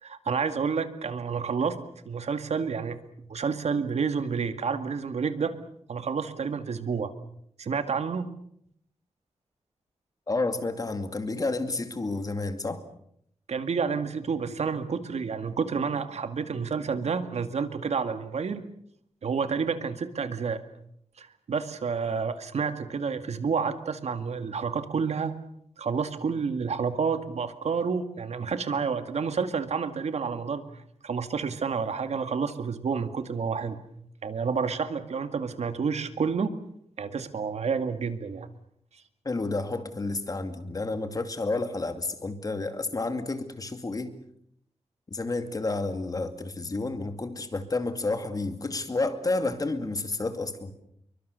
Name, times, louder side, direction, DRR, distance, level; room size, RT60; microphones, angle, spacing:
voice 1, 0.0-1.8 2.1-3.0 3.3-5.5 5.9-7.1 7.6-8.3 13.5-18.6 19.2-20.6 21.2-25.3 25.8-30.6 31.0-33.8 34.2-36.5 37.0-38.5, right 5 dB, 75° right, 9 dB, 2.1 m, -29 dB
voice 2, 10.3-12.8 39.2-44.1 45.1-50.7, left 3 dB, 35° left, 8 dB, 2.4 m, -30 dB
28.0 x 23.5 x 6.9 m, 0.71 s
wide cardioid pair, 175°, 11 cm